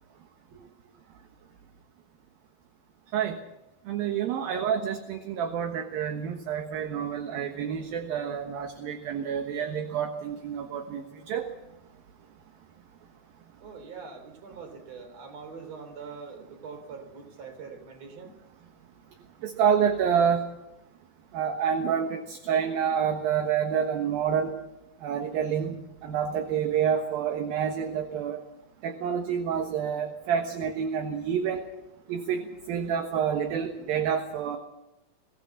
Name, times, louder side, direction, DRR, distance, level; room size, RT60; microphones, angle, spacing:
voice 1, 3.9-11.5 19.4-20.4 21.3-24.5 25.0-25.7 26.0-28.4 28.8-31.6 32.1-34.6, right 8 dB, 65° right, 5 dB, 2.9 m, -28 dB
voice 2, 13.6-18.4, right 5 dB, 40° right, 7 dB, 4.0 m, -43 dB
23.0 x 16.5 x 7.2 m, 0.95 s
omnidirectional pair, 5.1 m